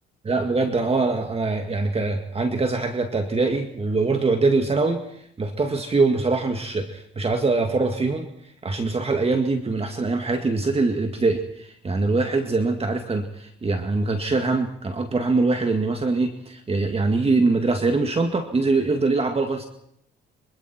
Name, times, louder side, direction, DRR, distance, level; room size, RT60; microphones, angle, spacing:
voice 1, 0.2-5.0 5.4-8.3 8.6-19.6, right 3 dB, 30° right, 5 dB, 2.2 m, -23 dB
26.0 x 24.0 x 4.5 m, 0.73 s
cardioid pair, 90°, 20 cm